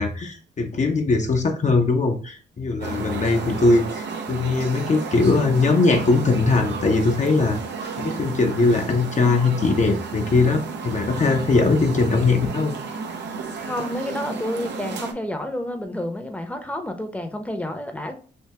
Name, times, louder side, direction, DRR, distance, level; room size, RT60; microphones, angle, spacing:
voice 1, 0.0-7.6 8.0-12.8, left 3 dB, 40° left, 3 dB, 0.7 m, -20 dB
sound 1, 2.8-15.1, right 5 dB, 75° right, 0.6 m, -32 dB
voice 2, 13.6-18.1, left 1 dB, 10° left, 6 dB, 0.7 m, -29 dB
3.4 x 2.7 x 2.8 m, 0.41 s
cardioid pair, 65°, 19 cm